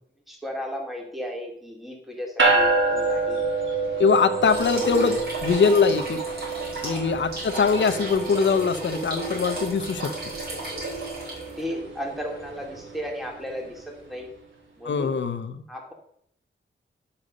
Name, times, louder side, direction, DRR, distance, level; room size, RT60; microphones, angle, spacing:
voice 1, 0.3-3.4 6.8-7.2 11.6-14.3 14.8-15.2 15.7-15.9, equal, ahead, 0 dB, 2.5 m, -35 dB
sound 1, 2.4-14.0, right 3 dB, 80° right, 3.1 m, -29 dB
voice 2, 4.0-6.2 6.8-10.1 14.8-15.6, left 5 dB, 65° left, 8 dB, 0.8 m, -22 dB
sound 2, 4.4-11.6, right 2 dB, 50° right, 4.8 m, -34 dB
11.0 x 5.7 x 6.6 m, 0.70 s
wide cardioid pair, 100°, 20 cm